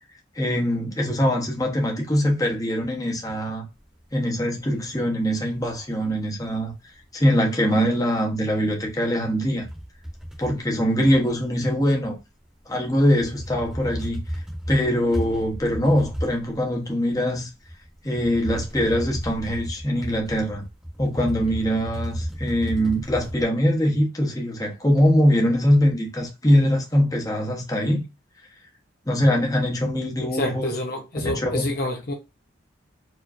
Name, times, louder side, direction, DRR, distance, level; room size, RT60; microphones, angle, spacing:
voice 1, 0.3-3.7 4.1-6.7 7.1-9.7 10.4-12.2 12.7-14.2 14.7-17.5 18.0-20.7 21.0-28.0 29.1-30.7 31.3-31.7, equal, 20° left, 1.0 m, -22 dB
sound 1, 3.7-6.1 6.4-7.0 7.4-12.2 12.5-23.4, equal, 5° right, 1.3 m, -35 dB
voice 2, 30.3-32.1, left 2 dB, 45° left, 0.7 m, -28 dB
4.8 x 3.0 x 2.5 m
head